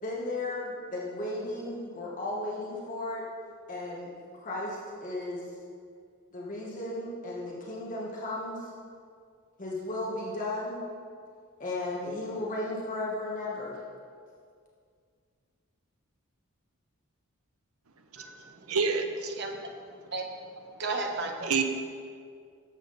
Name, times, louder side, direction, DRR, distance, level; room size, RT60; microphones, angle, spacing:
voice 1, 0.0-3.2 3.7-5.5 6.3-8.7 9.6-10.8 11.6-13.8, left 2 dB, 40° left, -4 dB, 1.4 m, -35 dB
voice 2, 18.2-18.8 19.3-21.5, right 3 dB, 50° right, 2 dB, 1.1 m, -36 dB
voice 3, 18.7-19.3 21.5-21.6, right 5 dB, 85° right, 6 dB, 0.9 m, -27 dB
12.0 x 7.4 x 4.1 m, 2.2 s
head